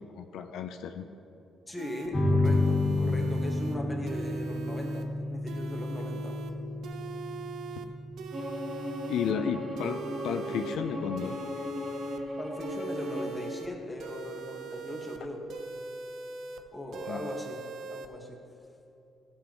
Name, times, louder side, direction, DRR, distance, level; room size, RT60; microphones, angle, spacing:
voice 1, 0.1-1.1 7.8-7.9 9.1-11.4 17.1-17.2, left 7 dB, 80° left, 7 dB, 0.4 m, -33 dB
voice 2, 1.7-6.3 12.4-15.4 16.7-17.6 17.9-18.4, left 1 dB, 15° left, 0 dB, 1.6 m, -39 dB
sound 1, 1.8-2.1 2.4-3.8 4.1-5.1 5.5-6.5 6.8-7.9 8.2-9.3 9.8-10.8 11.2-12.2 12.6-13.7 14.0-15.2 15.5-16.6 16.9-18.1, right 4 dB, 75° right, 0.7 m, -41 dB
sound 2, 2.1-13.1, left 2 dB, 35° left, 1.7 m, -32 dB
Bowed string instrument, 8.3-13.4, left 1 dB, 35° right, 2.3 m, -37 dB
14.5 x 7.5 x 3.0 m, 2.7 s
cardioid pair, 90°, 0 cm